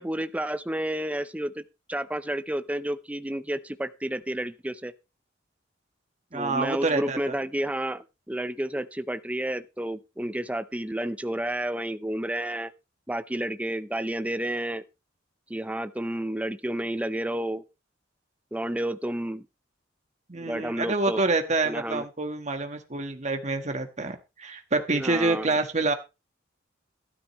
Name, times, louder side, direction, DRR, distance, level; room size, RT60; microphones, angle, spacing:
voice 1, 0.0-1.6 1.9-4.9 6.3-12.7 13.1-14.8 15.5-17.6 18.5-19.5 20.4-21.2 21.6-22.0 24.9-25.5, right 1 dB, 5° right, 0.5 m, -31 dB
voice 2, 6.3-7.2 20.3-25.9, right 3 dB, 35° right, 1.4 m, -27 dB
12.5 x 12.5 x 3.0 m
head